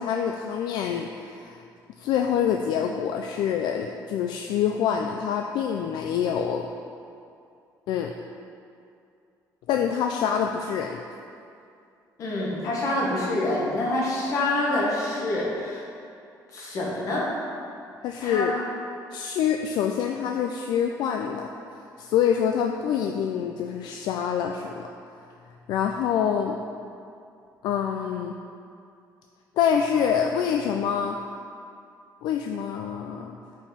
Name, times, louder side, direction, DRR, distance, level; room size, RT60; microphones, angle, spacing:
voice 1, 0.0-1.6 2.0-6.7 7.9-8.1 9.7-11.0 18.0-18.5 19.1-24.9 25.7-26.6 27.6-28.3 29.6-31.2 32.2-33.4, left 8 dB, 75° left, 3 dB, 0.3 m, -26 dB
voice 2, 12.2-15.8 16.5-17.3 18.2-18.6, left 1 dB, 50° left, -4 dB, 1.5 m, -26 dB
5.5 x 5.1 x 5.0 m, 2.5 s
cardioid pair, 170°, 7 cm